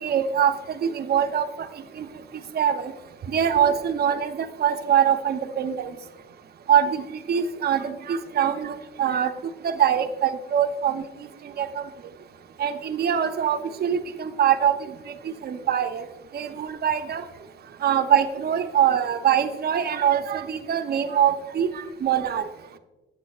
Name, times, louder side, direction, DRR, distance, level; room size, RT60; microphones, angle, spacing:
voice 1, 0.0-0.5 0.8-1.7 2.0-2.1 2.5-2.9 3.3-5.9 6.7-9.3 9.6-11.0 11.6-11.8 12.6-14.8 15.2-16.1 16.3-17.2 17.8-22.5, right 9 dB, 50° right, 9 dB, 0.6 m, -23 dB
11.0 x 7.4 x 2.4 m, 1.1 s
cardioid pair, 90°, 20 cm